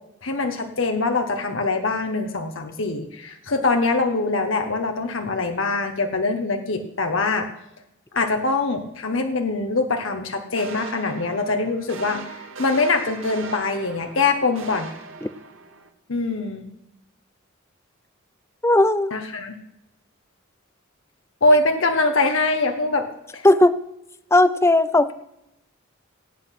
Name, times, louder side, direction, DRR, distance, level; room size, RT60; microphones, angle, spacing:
voice 1, 0.2-7.5 8.1-14.9 16.1-16.6 19.1-19.5 21.4-23.1 23.3-23.5, left 3 dB, 65° left, 5 dB, 1.3 m, -23 dB
sound 1, 10.6-15.9, right 4 dB, 70° right, 1.8 m, -39 dB
voice 2, 18.6-19.1 23.4-23.8 24.3-25.1, left 2 dB, 15° left, 13 dB, 0.5 m, -16 dB
17.5 x 8.3 x 5.9 m, 0.85 s
head